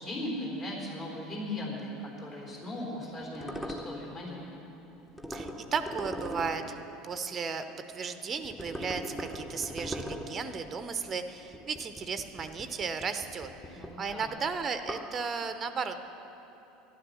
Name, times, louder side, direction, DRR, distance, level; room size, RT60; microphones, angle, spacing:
voice 1, 0.0-4.4 13.7-14.3, left 1 dB, 35° left, -2 dB, 3.9 m, -38 dB
sound 1, 2.4-7.9 8.3-15.2, equal, 5° left, 1.2 m, -42 dB
voice 2, 5.3-6.8 7.0-7.6 7.9-16.0, right 5 dB, 25° right, 9 dB, 0.7 m, -35 dB
12.0 x 11.0 x 7.2 m, 3.0 s
figure-of-eight pair, 70°, 0 cm